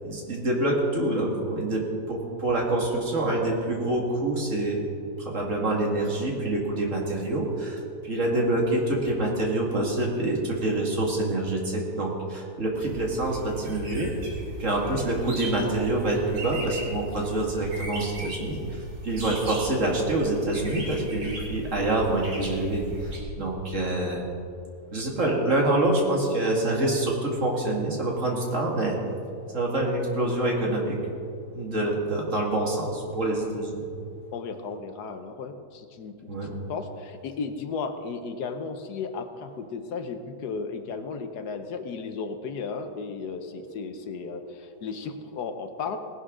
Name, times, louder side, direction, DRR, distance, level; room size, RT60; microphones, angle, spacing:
voice 1, 0.0-4.8 5.2-14.1 14.6-24.3 24.9-29.0 29.5-31.0 31.5-33.8 36.3-36.5, right 2 dB, 50° right, -1 dB, 2.4 m, -26 dB
sound 1, 12.7-23.2, right 1 dB, 85° right, 3.2 m, -38 dB
voice 2, 34.3-46.0, left 5 dB, 75° left, 8 dB, 1.4 m, -35 dB
18.0 x 11.0 x 3.8 m, 2.5 s
omnidirectional pair, 1.8 m